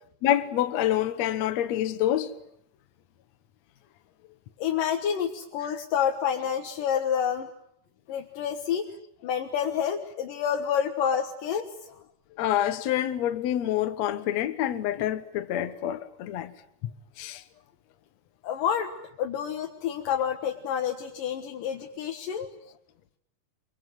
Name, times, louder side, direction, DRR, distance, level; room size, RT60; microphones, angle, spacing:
voice 1, 0.2-2.3 12.4-16.5 17.2-17.4, left 12 dB, 65° left, 2.2 m, -27 dB
voice 2, 4.6-7.5 8.1-8.9 9.2-11.7 18.4-18.9 19.2-22.5, left 8 dB, 85° left, 3.1 m, -28 dB
25.0 x 23.5 x 9.3 m
omnidirectional pair, 3.7 m